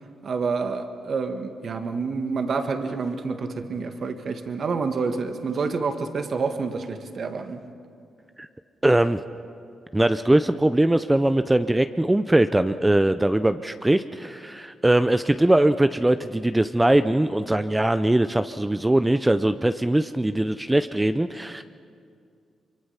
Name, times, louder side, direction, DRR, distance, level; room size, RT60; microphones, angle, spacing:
voice 1, 0.2-7.6, right 4 dB, 60° right, 6 dB, 1.7 m, -28 dB
voice 2, 8.8-9.2 9.9-21.6, right 1 dB, 15° right, 10 dB, 0.6 m, -21 dB
24.5 x 23.5 x 5.8 m, 2.3 s
cardioid pair, 65°, 0 cm